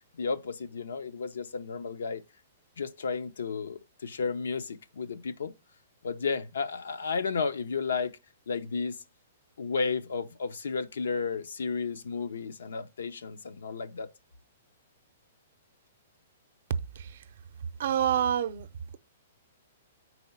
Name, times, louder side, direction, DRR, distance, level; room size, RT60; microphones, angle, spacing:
voice 1, 0.1-2.2 2.8-5.5 6.0-8.2 8.5-9.0 9.6-14.1, left 5 dB, 90° left, 0.6 m, -33 dB
voice 2, 17.8-18.7, right 9 dB, 60° right, 0.5 m, -27 dB
4.6 x 4.2 x 5.7 m
hypercardioid pair, 155°, 0 cm